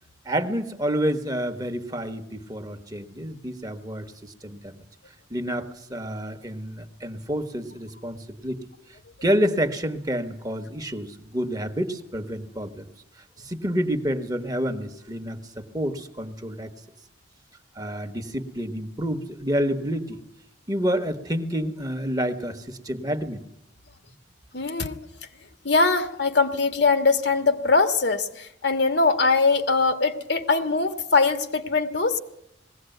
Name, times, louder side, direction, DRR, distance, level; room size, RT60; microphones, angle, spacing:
voice 1, 0.2-4.8 5.3-8.7 9.2-12.9 13.2-16.7 17.7-20.2 20.7-23.4, equal, 20° right, 10 dB, 1.3 m, -29 dB
voice 2, 24.5-25.0 25.6-32.2, left 4 dB, 65° left, 9 dB, 1.6 m, -22 dB
20.5 x 16.5 x 9.2 m, 0.79 s
head